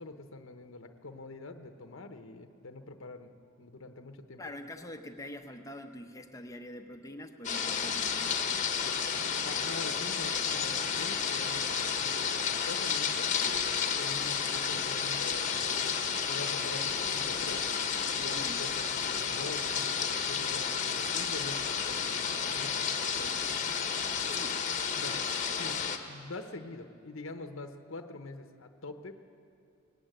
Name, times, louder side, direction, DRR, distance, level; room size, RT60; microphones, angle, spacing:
voice 1, 0.0-3.3 3.6-4.4 8.8-9.0 9.4-15.9 16.3-17.6 18.1-23.5 25.0-25.2 25.5-25.8 26.1-29.1, left 2 dB, 65° left, 7 dB, 0.9 m, -45 dB
voice 2, 4.4-8.6 18.3-18.6 23.2-23.3 24.3-24.6, left 1 dB, 15° left, 5 dB, 0.9 m, -45 dB
sound 1, 7.4-26.0, left 7 dB, 35° left, 1.1 m, -31 dB
19.0 x 16.0 x 8.9 m, 2.5 s
head